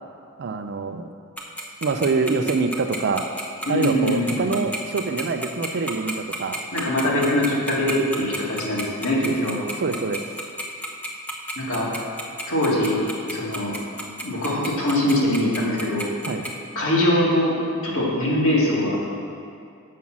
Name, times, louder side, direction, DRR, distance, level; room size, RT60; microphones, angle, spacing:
voice 1, 0.4-1.1 1.8-3.3 3.7-6.6 9.8-10.2 16.3-16.4, right 4 dB, 55° right, 8 dB, 0.4 m, -25 dB
Tick-tock, 1.4-16.5, right 1 dB, 5° left, 0.7 m, -30 dB
voice 2, 3.7-4.6 6.7-9.6 11.6-11.9 12.5-13.8 14.2-16.1 16.8-17.5 17.8-19.1, left 1 dB, 70° left, -5 dB, 2.1 m, -22 dB
7.4 x 5.5 x 6.0 m, 2.4 s
head